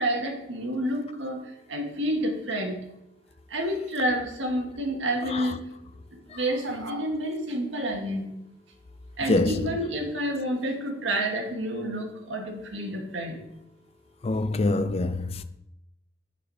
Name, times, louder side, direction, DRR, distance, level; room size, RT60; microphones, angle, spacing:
voice 1, 0.0-2.8 3.5-5.6 6.1-8.3 9.2-13.4, right 1 dB, 75° right, 1.5 m, -29 dB
voice 2, 9.3-9.6 14.2-15.4, left 2 dB, 30° left, 0.4 m, -25 dB
6.6 x 5.0 x 4.7 m
head